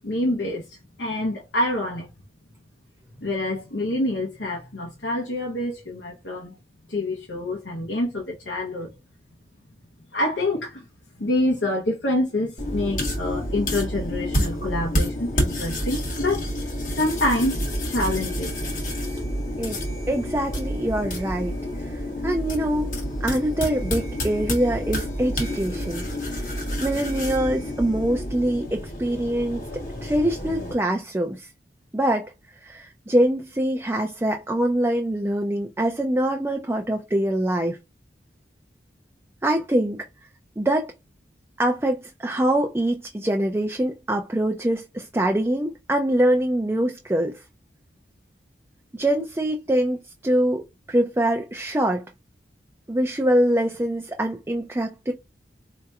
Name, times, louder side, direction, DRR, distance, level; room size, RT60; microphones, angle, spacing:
voice 1, 0.0-2.1 3.2-6.6 6.9-8.9 10.1-10.8 11.2-16.5 16.9-18.5, left 1 dB, 85° left, 0.9 m, -26 dB
sound 1, 12.6-30.7, equal, 45° left, 1.2 m, -29 dB
voice 2, 19.6-22.9 23.2-26.1 26.3-31.5 31.9-32.3 32.6-37.8 39.4-40.1 40.6-40.9 41.6-47.4 48.9-52.1 52.9-55.1, right 1 dB, 15° right, 0.4 m, -24 dB
4.2 x 2.9 x 2.3 m
head